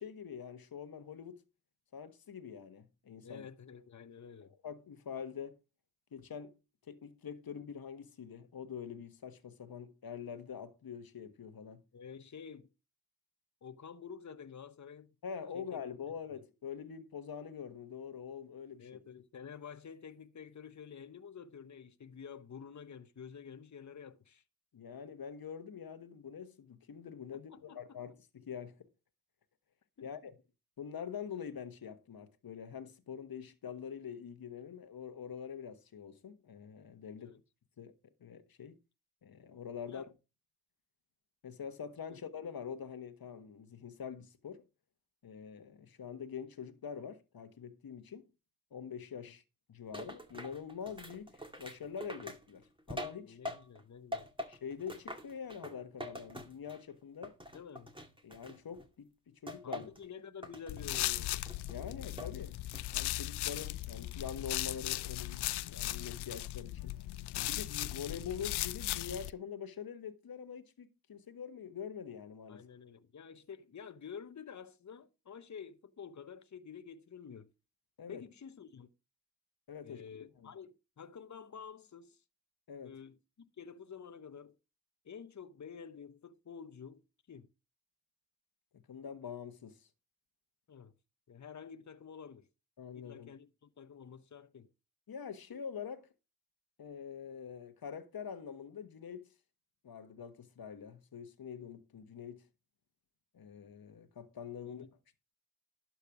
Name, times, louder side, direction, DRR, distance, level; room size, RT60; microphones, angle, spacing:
voice 1, 0.0-1.4 1.9-3.4 4.6-5.6 6.1-6.6 6.9-11.8 15.2-18.9 24.7-28.9 30.0-30.4 30.8-37.3 37.8-37.9 38.2-38.8 39.2-40.1 41.4-44.6 45.2-48.3 48.7-49.4 49.7-53.4 54.5-57.3 58.2-59.9 61.7-62.6 62.9-67.0 67.4-72.6 78.0-78.2 79.7-80.5 82.7-83.0 88.7-89.9 92.8-93.3 95.1-96.1 96.8-99.3 99.8-102.4 103.3-104.9, left 7 dB, 60° left, 1.4 m, -45 dB
voice 2, 3.2-4.5 11.9-12.7 13.6-15.1 15.5-15.8 16.3-16.4 18.8-24.4 27.3-28.0 30.0-30.3 37.2-37.4 39.9-40.1 42.1-42.2 49.2-49.3 53.2-54.3 57.5-57.9 59.6-61.4 72.5-77.5 78.1-78.9 79.8-82.2 82.8-84.5 85.0-87.0 87.3-87.5 90.7-90.9 91.3-92.5 92.9-94.7 104.6-104.9, left 7 dB, 45° left, 1.0 m, -50 dB
sound 1, 49.9-53.8 54.1-56.9 57.2-58.9 59.5-60.0 60.4-61.1 61.5-62.4 62.7-63.1, equal, 10° right, 2.2 m, -45 dB
sound 2, 60.7-69.3, left 15 dB, 75° left, 0.5 m, -37 dB
12.0 x 4.6 x 4.9 m
supercardioid pair, 45°, 40 cm